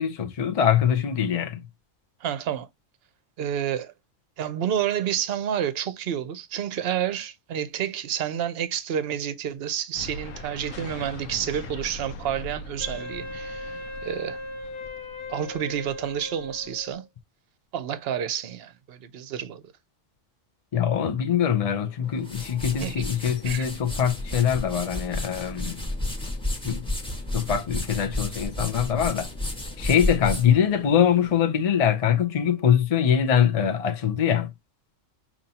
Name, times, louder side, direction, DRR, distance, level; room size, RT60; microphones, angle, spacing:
voice 1, 0.0-1.6 20.7-25.9 26.6-26.9 27.3-29.3 29.8-34.5, left 8 dB, 45° left, 0.5 m, -23 dB
voice 2, 2.2-2.7 3.4-3.9 4.4-14.4 15.3-17.0 17.7-19.6 22.8-23.0 23.4-23.6, right 9 dB, 55° right, 0.8 m, -29 dB
sound 1, 9.9-16.9, left 2 dB, 80° left, 1.1 m, -41 dB
Wind instrument woodwind instrument, 12.8-17.1, left 1 dB, 65° left, 1.4 m, -38 dB
sound 2, 22.0-31.4, left 1 dB, 5° left, 1.2 m, -32 dB
5.4 x 2.9 x 2.8 m
omnidirectional pair, 1.3 m